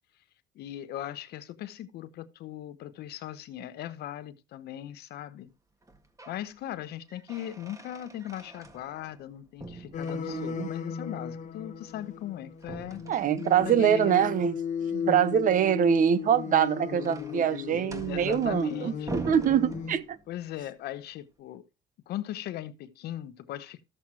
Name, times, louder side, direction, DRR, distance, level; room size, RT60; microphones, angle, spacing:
voice 1, 0.5-5.5 6.3-13.0 13.6-14.3 17.7-19.2 20.3-21.6 22.1-23.8, left 12 dB, 75° left, 0.9 m, -39 dB
sound 1, 5.8-6.5 6.8-9.3 9.6-10.8 12.6-14.2 16.2-20.4, right 3 dB, 20° right, 1.9 m, -44 dB
sound 2, 9.9-12.6 12.9-20.0, left 7 dB, 45° left, 1.2 m, -36 dB
voice 2, 10.3-10.7 13.1-14.5 14.9-20.2, right 8 dB, 50° right, 0.9 m, -24 dB
13.5 x 7.6 x 2.9 m
cardioid pair, 110°, 17 cm